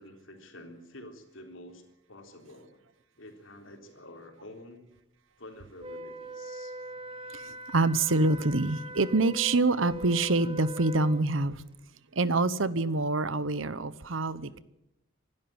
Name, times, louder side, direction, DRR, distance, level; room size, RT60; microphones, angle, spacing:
voice 1, 0.0-2.8 3.2-4.9 5.4-6.7, left 1 dB, 70° left, 3.7 m, -49 dB
Wind instrument woodwind instrument, 5.8-11.3, right 1 dB, 25° right, 1.7 m, -41 dB
voice 2, 7.3-11.6 12.1-14.6, right 3 dB, 75° right, 1.0 m, -26 dB
26.5 x 12.5 x 8.9 m
head